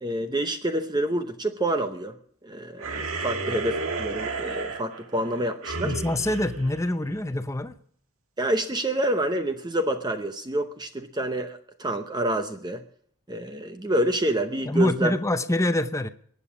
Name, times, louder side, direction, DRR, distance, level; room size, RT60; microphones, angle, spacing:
voice 1, 0.0-2.1 2.4-5.9 8.4-12.8 13.3-15.2, right 1 dB, 20° right, 0.7 m, -27 dB
sound 1, 2.8-7.5, right 3 dB, 70° right, 1.7 m, -33 dB
voice 2, 5.8-7.7 14.6-16.1, left 1 dB, 15° left, 0.7 m, -25 dB
22.0 x 8.7 x 6.1 m
head